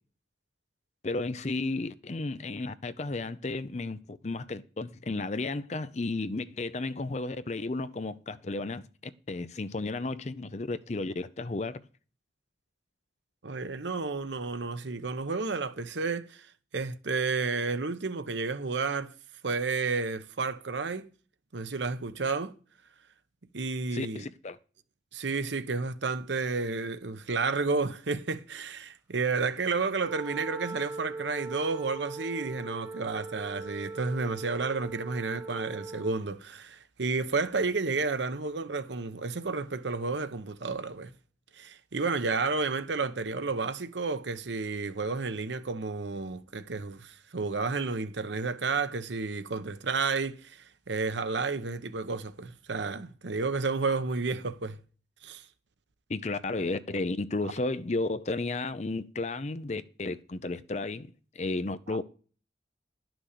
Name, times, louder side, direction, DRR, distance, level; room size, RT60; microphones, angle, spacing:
voice 1, 1.0-11.8 23.9-24.6 56.1-61.1 61.3-62.0, left 2 dB, 40° left, 0.5 m, -33 dB
voice 2, 13.4-16.5 16.7-19.1 19.4-21.1 21.5-22.5 23.5-24.3 25.1-41.1 41.6-54.8 55.2-55.4 61.9-62.0, right 4 dB, 80° right, 0.9 m, -31 dB
Wind instrument woodwind instrument, 30.0-36.3, right 3 dB, 15° right, 0.6 m, -40 dB
11.0 x 6.1 x 6.7 m
head